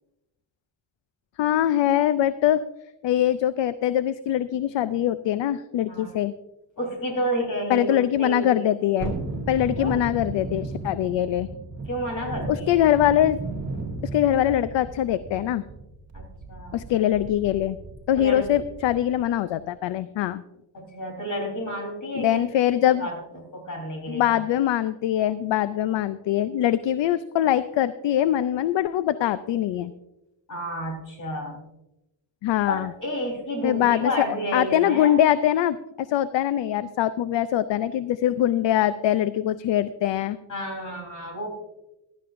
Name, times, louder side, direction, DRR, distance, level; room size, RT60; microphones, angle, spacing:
voice 1, 1.4-2.6 3.0-6.3 7.7-9.1 9.5-11.5 12.5-13.4 14.0-15.6 16.7-17.8 18.1-20.4 22.1-23.1 24.1-29.9 32.4-32.9 33.6-34.1 34.5-40.4, left 11 dB, 65° left, 14 dB, 0.5 m, -23 dB
voice 2, 6.8-8.6 9.8-10.0 11.9-12.8 16.1-16.8 18.1-18.5 20.7-22.4 22.9-24.4 30.5-31.6 32.7-35.1 40.5-41.5, equal, 40° left, 2 dB, 3.8 m, -31 dB
Thunderstorm, 9.0-19.2 19.6-19.7, right 3 dB, 35° right, 2.6 m, -35 dB
15.5 x 12.5 x 2.6 m, 0.93 s
wide cardioid pair, 170°, 47 cm